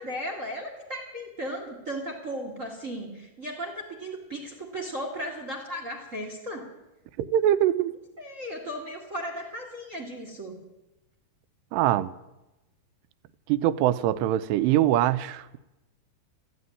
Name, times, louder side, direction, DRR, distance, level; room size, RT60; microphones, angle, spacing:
voice 1, 0.0-6.7 8.2-10.6, equal, 35° right, 3 dB, 1.4 m, -36 dB
voice 2, 7.2-8.0 11.7-12.1 13.5-15.6, right 12 dB, 85° right, 14 dB, 2.8 m, -23 dB
15.0 x 9.7 x 9.7 m, 0.96 s
omnidirectional pair, 4.8 m